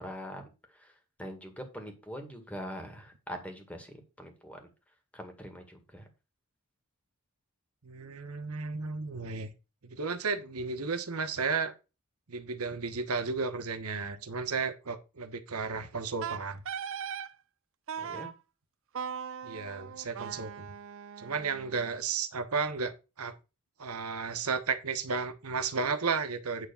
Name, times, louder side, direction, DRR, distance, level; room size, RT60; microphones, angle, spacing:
voice 1, 0.0-4.7 5.1-6.1 18.0-18.3, equal, 5° left, 2.0 m, -43 dB
voice 2, 7.8-9.5 9.8-11.7 12.3-16.6 19.4-20.7 21.2-23.3 23.8-26.7, right 5 dB, 90° right, 1.1 m, -33 dB
Wind instrument woodwind instrument, 16.2-17.3 17.9-18.3 18.9-21.9, right 7 dB, 65° right, 0.5 m, -39 dB
9.6 x 3.5 x 7.0 m
head